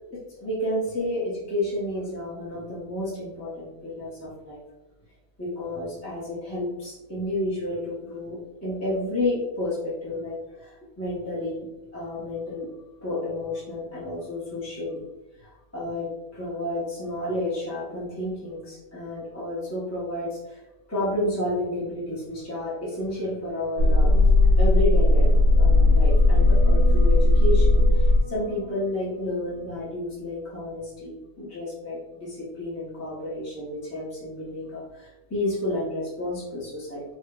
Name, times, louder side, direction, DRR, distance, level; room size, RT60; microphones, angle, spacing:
voice 1, 0.1-4.6 5.4-11.7 11.9-12.7 13.0-15.0 15.4-20.6 20.9-37.0, left 1 dB, 15° left, -9 dB, 0.5 m, -31 dB
sound 1, 23.8-28.8 29.2-29.3, left 2 dB, 90° left, 1.3 m, -18 dB
4.1 x 2.1 x 2.2 m, 1.0 s
omnidirectional pair, 1.5 m